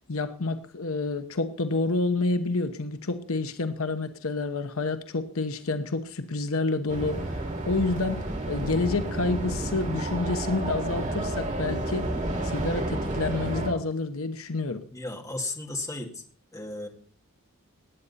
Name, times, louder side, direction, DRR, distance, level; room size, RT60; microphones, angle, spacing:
voice 1, 0.1-12.1 12.4-14.9, left 3 dB, 75° left, 1.0 m, -29 dB
sound 1, 6.9-13.7, right 1 dB, 35° right, 3.5 m, -31 dB
voice 2, 14.9-16.2 16.5-16.9, left 2 dB, 15° left, 2.1 m, -34 dB
19.0 x 8.8 x 4.2 m
head